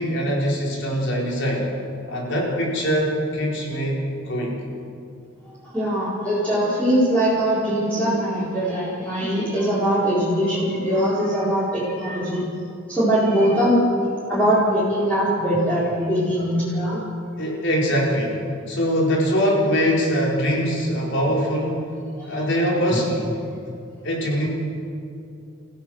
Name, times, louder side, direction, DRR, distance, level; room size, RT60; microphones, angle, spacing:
voice 1, 0.0-1.7 2.1-4.6 17.4-21.8 22.3-23.3 24.0-24.5, equal, 65° left, -2 dB, 4.7 m, -23 dB
voice 2, 5.7-12.4 12.9-13.8 14.3-17.0 22.2-22.4 22.9-23.0, equal, 5° left, -10 dB, 4.7 m, -21 dB
29.5 x 15.5 x 6.5 m, 2.6 s
head